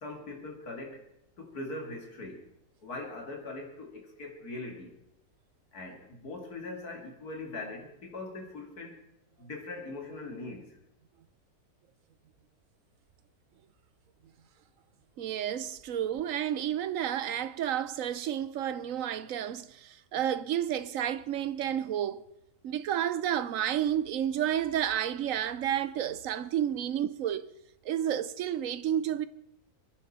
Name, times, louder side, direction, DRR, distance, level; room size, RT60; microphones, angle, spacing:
voice 1, 0.0-1.1 1.4-2.5 2.8-5.0 5.7-9.0 9.4-10.8, left 2 dB, 75° left, 3.1 m, -41 dB
voice 2, 15.2-22.2 22.6-27.5 27.8-29.3, right 10 dB, 65° right, 1.1 m, -31 dB
25.5 x 10.5 x 4.3 m
omnidirectional pair, 1.6 m